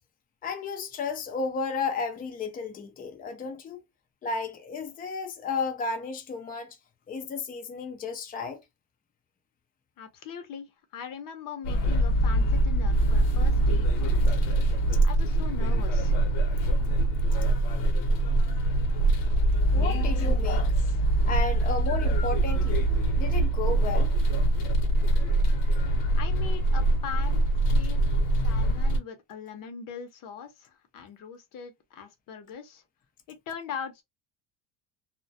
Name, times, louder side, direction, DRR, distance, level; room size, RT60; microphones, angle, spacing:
voice 1, 0.4-3.8 4.2-6.8 7.1-8.6 19.7-20.7 21.3-22.9 23.2-24.1, left 4 dB, 20° left, 0.4 m, -33 dB
voice 2, 10.0-14.4 15.0-16.2 26.1-28.0 28.4-32.8 33.3-34.0, left 7 dB, 50° left, 0.7 m, -41 dB
sound 1, 11.6-29.0, right 1 dB, 85° left, 0.9 m, -23 dB
2.2 x 2.1 x 2.6 m
cardioid pair, 145°, 42 cm